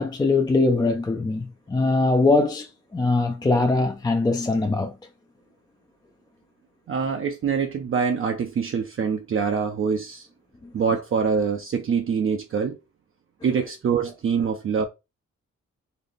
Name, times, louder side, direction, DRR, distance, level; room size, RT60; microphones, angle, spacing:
voice 1, 0.0-5.0 10.6-10.7, left 3 dB, 15° left, 0.3 m, -22 dB
voice 2, 6.9-10.3 10.7-12.8 13.4-14.8, right 6 dB, 45° right, 0.5 m, -24 dB
3.9 x 2.2 x 3.4 m
wide cardioid pair, 150°, 29 cm